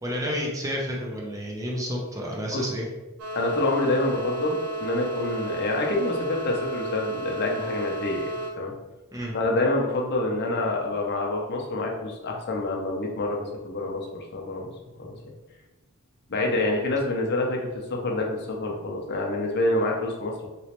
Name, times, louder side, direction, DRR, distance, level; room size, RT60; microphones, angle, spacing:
voice 1, 0.0-2.9 9.1-9.3, equal, 15° right, -2 dB, 0.5 m, -30 dB
sound 1, 3.2-8.5, right 2 dB, 85° right, 0.7 m, -32 dB
voice 2, 3.3-8.7 9.3-14.7 15.0-15.3 16.3-20.5, left 2 dB, 50° left, 0 dB, 0.6 m, -27 dB
3.0 x 3.0 x 2.9 m, 1.1 s
head